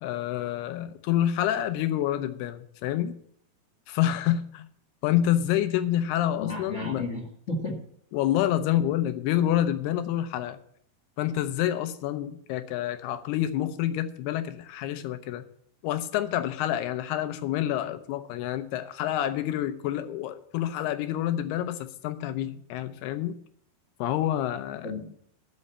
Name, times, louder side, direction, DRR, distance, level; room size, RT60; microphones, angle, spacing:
voice 1, 0.0-3.2 3.9-4.7 5.0-7.1 8.1-10.6 11.2-15.4 15.8-23.4 24.0-24.9, left 12 dB, 85° left, 10 dB, 2.8 m, -28 dB
voice 2, 6.4-7.8 24.8-25.1, left 2 dB, 35° left, 0 dB, 1.1 m, -33 dB
13.0 x 5.4 x 8.6 m, 0.64 s
omnidirectional pair, 4.5 m